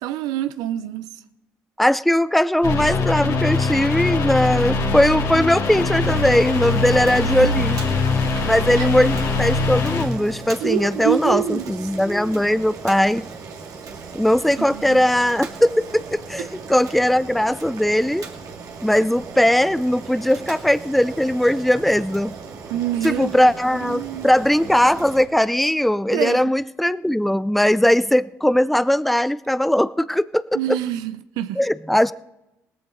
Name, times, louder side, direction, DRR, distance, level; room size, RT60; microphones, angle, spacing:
voice 1, 0.0-1.1 7.4-7.7 8.8-8.9 10.6-11.6 14.7-15.0 22.7-23.5 23.8-24.3 26.1-26.4 30.5-31.6, right 12 dB, 80° right, 0.7 m, -26 dB
voice 2, 1.8-7.8 8.4-13.3 14.1-18.3 18.8-22.4 23.0-30.8 31.6-32.1, left 1 dB, ahead, 0.5 m, -19 dB
sound 1, 2.6-10.1, left 3 dB, 65° left, 2.6 m, -22 dB
Boiling, 6.0-25.2, right 5 dB, 65° right, 2.3 m, -38 dB
18.5 x 14.0 x 3.9 m
supercardioid pair, 65°, 7 cm